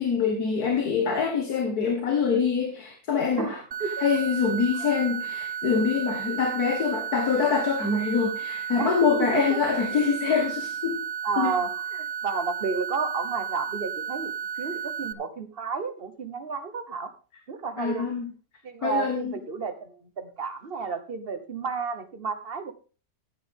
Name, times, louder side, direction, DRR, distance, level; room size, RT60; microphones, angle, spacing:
voice 1, 0.0-3.6 4.0-11.0 11.4-11.5 17.8-18.3 18.8-19.4, left 6 dB, 75° left, 4 dB, 2.0 m, -25 dB
voice 2, 3.4-4.0 8.7-9.6 11.2-14.3 14.6-17.1 17.5-18.1 18.6-22.7, right 5 dB, 40° right, 9 dB, 1.4 m, -31 dB
sound 1, 3.7-15.1, right 8 dB, 85° right, 0.3 m, -33 dB
14.0 x 9.3 x 3.6 m, 0.36 s
omnidirectional pair, 1.6 m